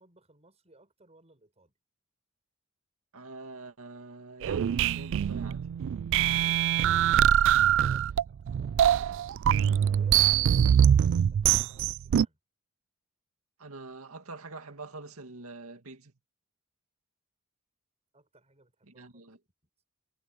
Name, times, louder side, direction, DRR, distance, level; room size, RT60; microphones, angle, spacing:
voice 1, 0.0-1.7 6.1-9.5 9.9-12.4 18.1-19.2, right 2 dB, 30° right, 7.4 m, -61 dB
voice 2, 3.1-5.7 13.6-16.1 18.9-19.4, right 3 dB, 80° right, 2.2 m, -45 dB
sound 1, 4.4-12.3, right 9 dB, 60° right, 0.3 m, -23 dB
head